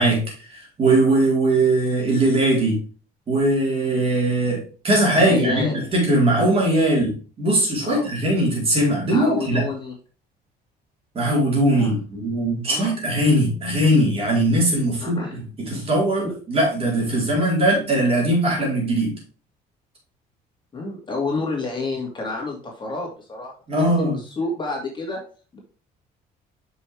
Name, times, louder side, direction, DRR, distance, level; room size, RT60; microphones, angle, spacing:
voice 1, 0.0-2.8 3.3-9.6 11.1-19.1 23.7-24.2, right 1 dB, 35° right, -2 dB, 4.2 m, -20 dB
voice 2, 5.2-5.8 7.8-8.1 9.1-9.9 11.7-11.9 12.6-12.9 15.0-15.4 16.2-16.4 20.7-25.2 25.5-25.6, left 3 dB, 25° left, 0 dB, 2.4 m, -29 dB
6.8 x 5.7 x 3.4 m, 0.36 s
cardioid pair, 110°, 17 cm